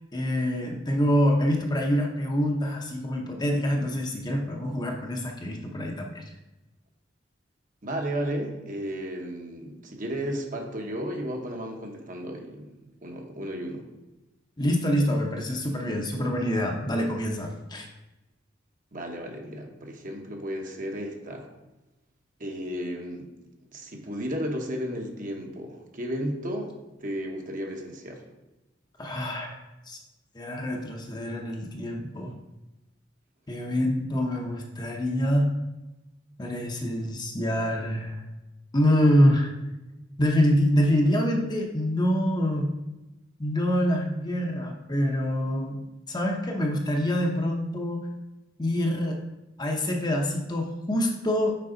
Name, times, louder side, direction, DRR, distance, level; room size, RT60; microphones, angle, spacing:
voice 1, 0.1-6.2 14.6-17.9 29.0-29.6 29.9-30.0 30.3-32.3 33.5-35.5 36.4-38.2 38.7-39.5 40.2-42.7 43.4-48.1 48.6-49.2 49.6-51.6, equal, 20° left, 1 dB, 0.8 m, -26 dB
voice 2, 7.8-12.7 13.0-13.9 18.9-21.5 22.4-23.3 23.7-26.7 27.0-28.2, equal, 45° right, 2 dB, 1.1 m, -33 dB
6.6 x 4.7 x 3.9 m, 1.0 s
head